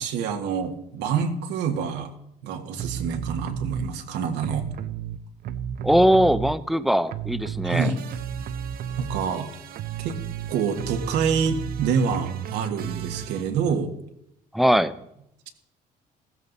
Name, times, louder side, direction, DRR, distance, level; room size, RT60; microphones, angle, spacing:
voice 1, 0.0-2.1 2.4-4.7 7.6-8.0 9.0-9.5 10.0-10.1 10.5-13.9, right 6 dB, 90° right, 4 dB, 1.6 m, -26 dB
sound 1, 2.8-3.9 4.4-6.8 7.1-13.4, right 9 dB, 60° right, 0.8 m, -33 dB
voice 2, 5.8-7.9 14.5-14.9, equal, ahead, 14 dB, 0.6 m, -20 dB
15.0 x 14.0 x 4.0 m, 0.79 s
cardioid pair, 110°, 17 cm